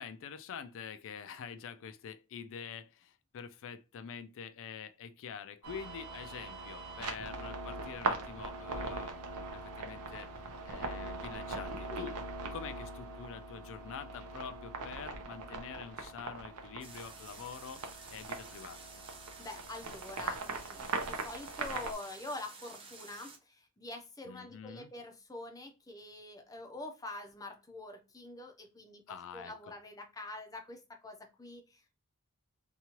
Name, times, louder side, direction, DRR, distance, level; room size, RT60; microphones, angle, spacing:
voice 1, 0.0-9.2 9.5-10.3 10.7-12.2 12.5-17.8 18.1-18.8 24.3-24.9 29.1-29.5, left 7 dB, 60° left, 0.4 m, -46 dB
sound 1, 5.6-21.9, right 3 dB, 80° right, 0.6 m, -41 dB
sound 2, 16.8-23.4, right 4 dB, 25° right, 0.6 m, -52 dB
voice 2, 19.4-29.0 29.3-32.0, left 2 dB, 15° left, 0.6 m, -46 dB
2.9 x 2.3 x 2.9 m
head